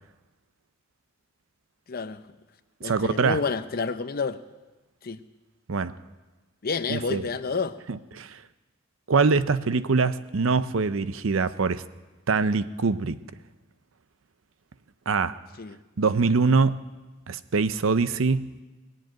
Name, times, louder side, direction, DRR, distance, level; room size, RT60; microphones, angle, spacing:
voice 1, 1.9-2.2 2.8-4.4 5.0-5.2 6.6-7.8 15.6-15.8, left 4 dB, 50° left, 12 dB, 0.7 m, -29 dB
voice 2, 2.8-3.4 5.7-5.9 6.9-7.2 7.9-8.4 9.1-11.8 12.3-13.2 15.1-15.4 16.0-16.8 17.3-18.5, right 4 dB, 85° right, 14 dB, 0.6 m, -23 dB
19.0 x 7.6 x 9.2 m, 1.2 s
head